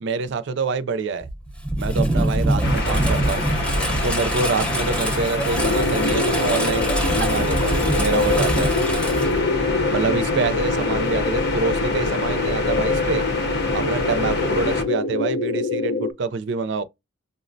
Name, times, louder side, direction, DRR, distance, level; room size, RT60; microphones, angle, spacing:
voice 1, 0.0-1.3 1.8-3.5 4.0-8.7 9.9-13.2 13.7-16.8, right 4 dB, 55° right, 0.4 m, -26 dB
Engine, 1.2-10.0, right 1 dB, 5° left, 0.8 m, -24 dB
sound 1, 2.6-14.8, left 2 dB, 50° left, 0.7 m, -27 dB
sound 2, 5.6-16.1, left 3 dB, 85° left, 0.7 m, -25 dB
5.3 x 2.1 x 2.5 m
head